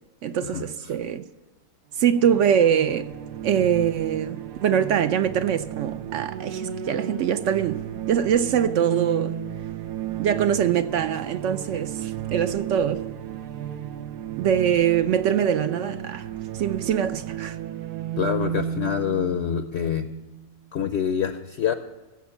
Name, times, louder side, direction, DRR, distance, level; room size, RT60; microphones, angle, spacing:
voice 1, 0.2-1.2 2.0-3.1 3.4-7.8 8.1-9.3 10.2-13.1 14.4-16.3 16.5-17.6, right 9 dB, 70° right, 0.7 m, -23 dB
sound 1, 2.0-20.6, right 10 dB, 85° right, 1.3 m, -34 dB
voice 2, 18.2-20.1 20.7-21.7, left 8 dB, 60° left, 0.7 m, -26 dB
15.5 x 7.3 x 7.0 m
omnidirectional pair, 1.6 m